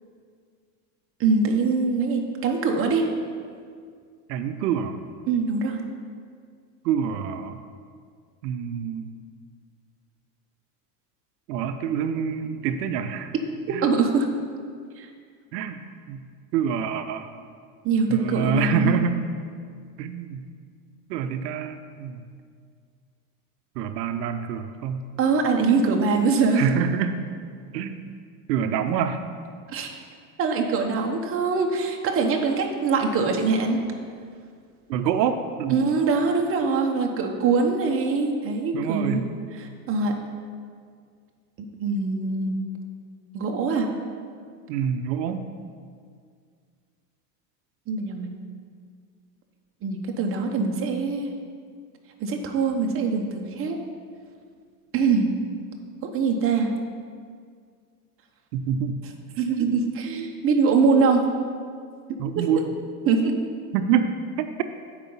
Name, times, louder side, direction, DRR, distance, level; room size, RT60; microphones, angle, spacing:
voice 1, 1.2-3.1 5.3-5.8 13.7-14.3 15.0-15.1 17.8-18.9 25.2-26.6 29.7-30.0 30.4-33.8 35.7-40.1 41.8-42.5 43.3-43.9 47.9-48.3 49.8-51.3 52.2-53.8 54.9-55.3 56.0-56.7 59.4-61.2 62.4-62.5 63.1-63.3, right 4 dB, 25° right, 2 dB, 0.9 m, -23 dB
voice 2, 4.3-5.0 6.8-7.6 8.4-9.1 11.5-13.3 13.7-13.9 15.5-15.8 16.1-16.2 16.5-17.3 18.1-19.2 20.0-20.5 21.1-22.2 23.8-25.1 26.5-27.2 27.7-28.1 28.5-29.2 34.9-35.8 38.7-39.3 44.7-45.4 58.5-59.0 62.2-62.7 63.7-64.5, right 7 dB, 85° right, 8 dB, 0.7 m, -26 dB
8.3 x 4.9 x 5.4 m, 2.1 s
supercardioid pair, 130°, 48 cm